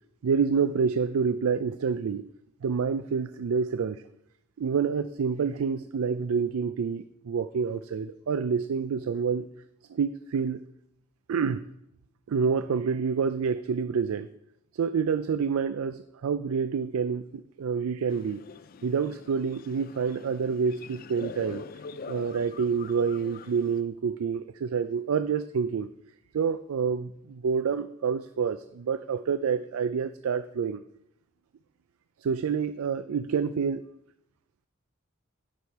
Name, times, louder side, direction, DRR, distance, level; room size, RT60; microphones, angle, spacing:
voice 1, 0.2-2.3 2.6-4.0 4.6-9.5 9.9-10.6 11.3-11.6 12.3-14.3 14.7-18.4 18.8-21.6 22.1-25.9 26.3-30.8 32.2-33.8, right 6 dB, 85° right, 12 dB, 0.4 m, -28 dB
sound 1, 18.1-23.8, left 5 dB, 45° left, 0.3 m, -44 dB
11.5 x 6.2 x 4.6 m, 0.80 s
head